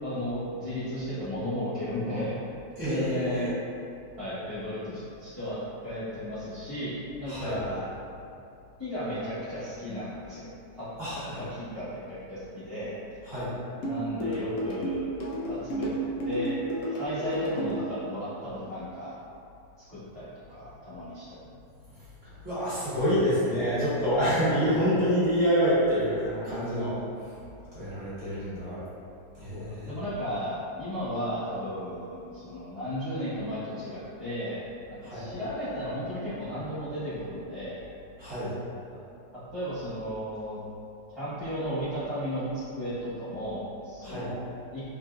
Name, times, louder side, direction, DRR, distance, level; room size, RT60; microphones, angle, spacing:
voice 1, 0.0-2.3 2.8-3.5 4.2-5.6 5.8-7.9 8.8-10.5 10.8-13.0 13.8-15.1 15.5-16.5 16.8-19.2 19.9-21.4 29.5-34.6 34.9-37.8 39.3-40.6 41.1-44.8, equal, 15° left, -15 dB, 1.0 m, -34 dB
voice 2, 2.8-3.5 7.3-7.6 11.0-11.4 13.2-13.5 22.4-27.0 27.7-28.8 29.4-29.9 35.0-35.3 38.2-38.5 44.0-44.3, equal, 40° right, -15 dB, 1.7 m, -27 dB
sound 1, 13.8-17.8, right 1 dB, 80° left, 0.6 m, -31 dB
3.7 x 2.7 x 2.3 m, 2.6 s
omnidirectional pair, 1.9 m